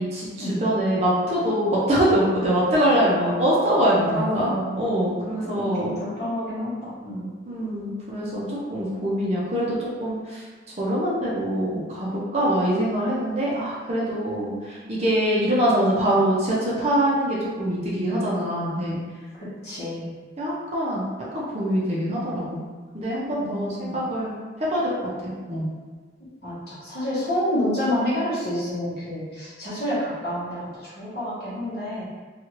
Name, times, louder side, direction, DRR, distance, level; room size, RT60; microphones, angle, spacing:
voice 1, 0.0-5.9 7.5-8.4 8.7-10.4 10.8-19.0 20.4-21.1 21.3-22.6 22.9-24.3 24.7-25.7, right 1 dB, 35° right, -6 dB, 0.5 m, -24 dB
voice 2, 4.1-5.1 5.5-7.3 19.3-20.1 23.4-24.0 26.4-32.1, left 1 dB, 50° left, -9 dB, 1.0 m, -29 dB
2.6 x 2.4 x 3.0 m, 1.4 s
head